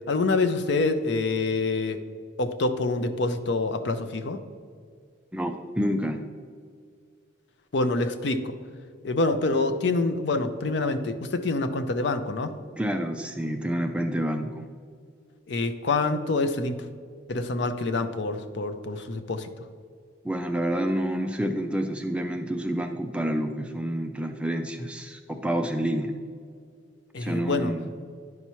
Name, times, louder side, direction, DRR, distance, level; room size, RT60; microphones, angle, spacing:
voice 1, 0.1-2.0 2.4-4.4 7.7-8.5 9.0-12.6 15.5-16.8 17.3-19.5 27.1-27.7, left 3 dB, 60° left, 9 dB, 0.5 m, -26 dB
voice 2, 5.3-6.2 12.8-14.7 20.2-26.1 27.2-27.9, equal, 5° right, 5 dB, 0.3 m, -28 dB
10.5 x 5.6 x 3.0 m, 2.1 s
head